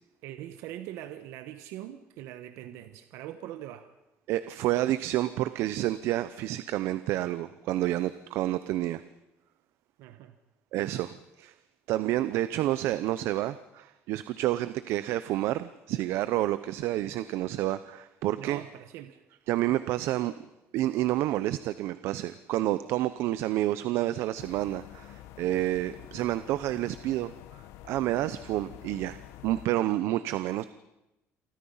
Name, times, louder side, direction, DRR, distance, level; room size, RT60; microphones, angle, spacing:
voice 1, 0.2-3.9 10.0-10.4 18.4-19.2, right 12 dB, 90° right, 9 dB, 1.3 m, -42 dB
voice 2, 4.3-9.0 10.7-11.5 11.9-18.6 19.5-20.3 20.7-27.3 27.8-30.6, right 14 dB, 70° right, 14 dB, 0.8 m, -29 dB
sound 1, 24.4-29.7, left 13 dB, 90° left, 1.1 m, -48 dB
29.0 x 24.5 x 5.7 m, 0.95 s
cardioid pair, 175°, 5 cm